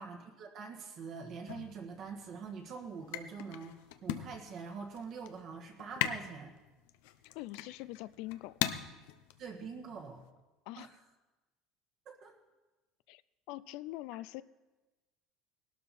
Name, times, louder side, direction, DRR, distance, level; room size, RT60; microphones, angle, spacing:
voice 1, 0.0-6.5 9.4-10.2 10.8-10.9 12.0-12.3, right 5 dB, 40° right, 2 dB, 1.6 m, -44 dB
sound 1, 1.5-10.3, left 12 dB, 85° left, 0.8 m, -41 dB
voice 2, 7.3-8.6 10.7-10.9 13.1-13.2 13.5-14.4, left 17 dB, 65° left, 17 dB, 0.4 m, -43 dB
19.0 x 12.5 x 4.3 m, 1.1 s
cardioid pair, 165°, 0 cm